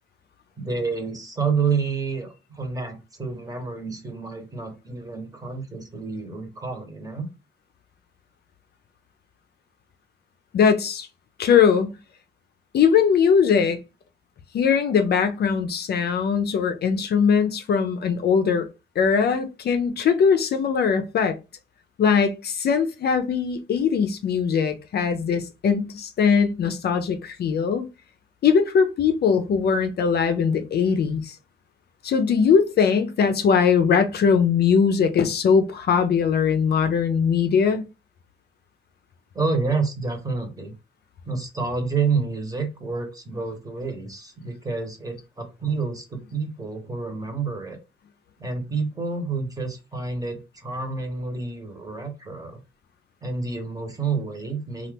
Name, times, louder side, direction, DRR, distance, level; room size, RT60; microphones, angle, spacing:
voice 1, 0.6-7.3 39.3-40.7 41.2-47.8 48.4-52.6 53.2-54.9, right 4 dB, 20° right, 1.0 m, -29 dB
voice 2, 10.5-11.1 11.4-11.9 12.7-13.8 14.5-18.7 19.0-21.4 22.0-27.9 28.4-31.4 32.0-37.9, left 6 dB, 55° left, 0.5 m, -20 dB
2.8 x 2.4 x 3.4 m
cardioid pair, 90°, 20 cm